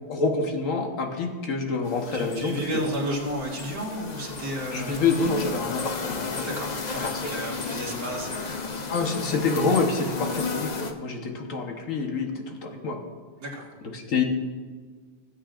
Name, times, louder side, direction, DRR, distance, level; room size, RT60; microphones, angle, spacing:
voice 1, 0.1-2.5 4.7-6.5 6.9-7.1 8.9-13.0 13.9-14.2, left 4 dB, 55° left, 2 dB, 1.4 m, -27 dB
sound 1, 1.8-10.9, left 4 dB, 85° left, 0.3 m, -33 dB
voice 2, 2.1-5.0 6.4-8.7 13.4-13.7, right 1 dB, 60° right, -4 dB, 2.4 m, -32 dB
16.5 x 8.0 x 2.5 m, 1.5 s
omnidirectional pair, 1.8 m